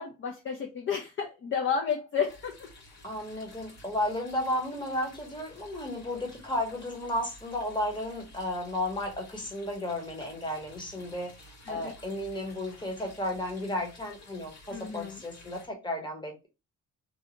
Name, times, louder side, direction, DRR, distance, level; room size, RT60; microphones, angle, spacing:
voice 1, 0.0-2.7 11.7-11.9 14.7-15.2, left 6 dB, 40° left, 0.5 m, -32 dB
sound 1, 2.3-15.7, left 1 dB, 60° left, 1.5 m, -53 dB
voice 2, 3.0-16.5, left 1 dB, 15° left, 1.1 m, -33 dB
2.7 x 2.2 x 2.7 m
cardioid pair, 90°, 30 cm